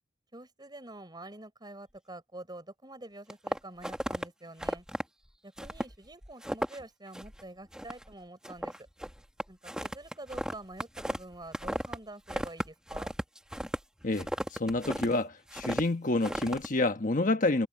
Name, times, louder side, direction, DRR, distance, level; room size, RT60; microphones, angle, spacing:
voice 1, 0.3-4.9 5.4-8.8 9.5-13.1, right 2 dB, 25° right, 5.5 m, -47 dB
sound 1, 3.3-4.2 4.6-5.0 5.6-6.0 6.2-6.8 7.1-7.4 7.7-8.1 8.4-12.0 12.3-15.1 15.5-15.8 16.2-16.7, equal, 5° right, 1.3 m, -35 dB
voice 2, 14.0-17.7, left 2 dB, 45° left, 1.2 m, -28 dB
head